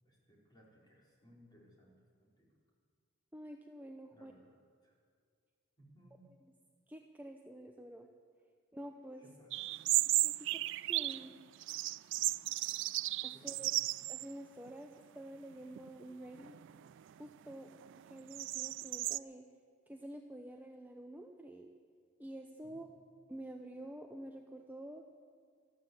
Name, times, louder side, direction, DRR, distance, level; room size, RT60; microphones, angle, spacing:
voice 1, 0.0-1.9 2.2-2.5 4.1-4.6 4.8-4.9 5.8-6.3 9.2-9.6 13.3-13.6 22.6-22.8, equal, 20° left, -4 dB, 4.1 m, -63 dB
voice 2, 3.3-4.3 6.9-8.1 8.7-9.2 10.2-10.6 10.9-11.4 13.2-13.7 14.1-14.9 15.1-16.6 17.2-17.7 18.1-19.4 19.9-21.7 22.2-22.9 23.3-25.0, right 1 dB, 10° right, 3 dB, 0.7 m, -48 dB
sound 1, 9.5-11.3 11.6-14.3 14.7-14.8 15.5-15.9 16.4-19.2, right 18 dB, 60° right, 0.3 m, -35 dB
13.5 x 13.0 x 7.8 m, 2.1 s
head